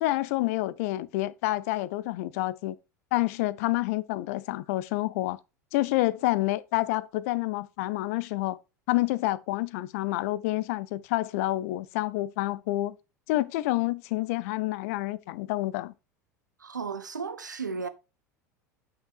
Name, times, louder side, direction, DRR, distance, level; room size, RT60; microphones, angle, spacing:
voice 1, 0.0-2.8 3.1-5.4 5.7-8.6 8.9-12.9 13.3-15.9, left 17 dB, 55° left, 0.5 m, -28 dB
voice 2, 16.6-17.9, right 5 dB, 80° right, 0.7 m, -34 dB
8.8 x 5.7 x 2.4 m
figure-of-eight pair, 75°, 10 cm